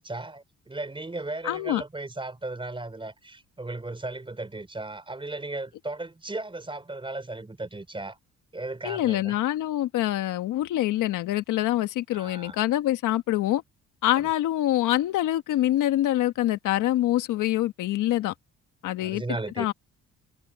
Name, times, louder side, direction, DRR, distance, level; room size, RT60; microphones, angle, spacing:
voice 1, 0.0-8.2 8.5-9.4 12.1-12.6 19.0-19.7, right 2 dB, 15° right, 4.9 m, -36 dB
voice 2, 1.4-1.8 8.8-13.6 14.0-18.3 18.8-19.2 19.6-19.7, left 14 dB, 90° left, 1.4 m, -25 dB
cardioid pair, 90°, 30 cm